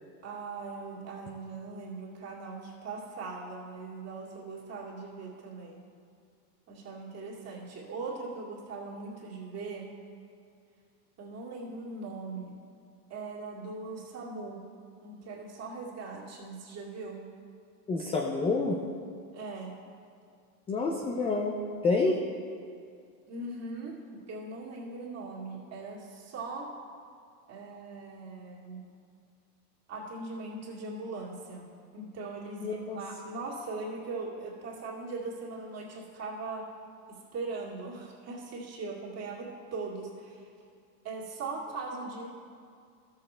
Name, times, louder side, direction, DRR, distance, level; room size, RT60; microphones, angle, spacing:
voice 1, 0.2-5.8 6.7-9.9 11.2-12.5 13.1-14.6 15.0-17.2 19.3-19.7 23.3-26.7 27.5-28.8 29.9-31.6 31.9-36.7 37.1-40.5 41.0-42.3, right 3 dB, 30° right, -3 dB, 2.3 m, -40 dB
voice 2, 17.9-18.8 20.7-21.5 21.8-22.2 32.6-33.0, left 3 dB, 15° left, 0 dB, 0.4 m, -28 dB
13.0 x 6.8 x 4.3 m, 2.3 s
supercardioid pair, 120°, 48 cm